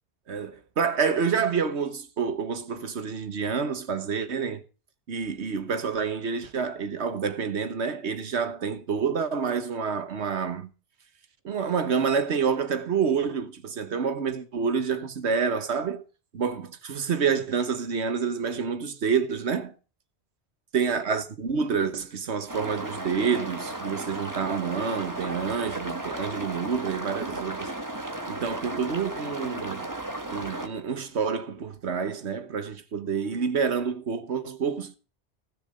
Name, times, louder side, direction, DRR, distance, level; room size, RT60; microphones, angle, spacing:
voice 1, 0.3-4.6 5.1-10.7 11.4-16.0 16.3-19.7 20.7-27.7 28.3-29.9 30.3-34.9, right 6 dB, 80° right, 1.5 m, -28 dB
sound 1, 22.5-30.7, right 2 dB, 15° right, 1.5 m, -35 dB
16.0 x 6.9 x 5.2 m
omnidirectional pair, 1.1 m